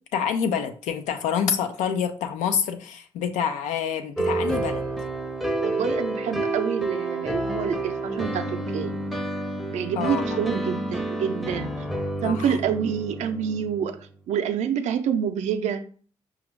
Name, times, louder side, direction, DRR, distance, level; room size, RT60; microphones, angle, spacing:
voice 1, 0.1-4.8 10.0-10.2 12.2-12.5, left 7 dB, 85° left, 7 dB, 0.5 m, -27 dB
sound 1, 4.2-14.0, right 2 dB, ahead, 0.6 m, -29 dB
voice 2, 5.6-9.0 9.7-11.9 12.2-14.0 14.3-15.8, right 8 dB, 75° right, 8 dB, 0.5 m, -27 dB
5.1 x 2.3 x 3.2 m, 0.43 s
supercardioid pair, 60°, 12 cm